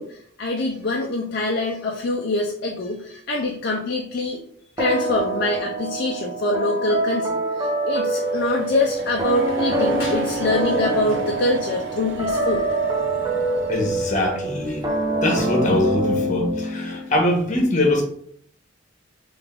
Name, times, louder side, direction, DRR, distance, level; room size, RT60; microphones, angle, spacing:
voice 1, 0.0-4.4 4.8-12.6 16.9-17.0, left 2 dB, 55° left, -1 dB, 0.5 m, -24 dB
sound 1, 4.8-17.2, right 2 dB, 20° right, 0.8 m, -25 dB
sound 2, 7.8-16.5, right 2 dB, 70° right, 0.6 m, -39 dB
voice 2, 13.7-14.9 15.2-18.0, left 1 dB, 40° left, 1 dB, 1.2 m, -22 dB
3.6 x 3.4 x 3.6 m, 0.63 s
head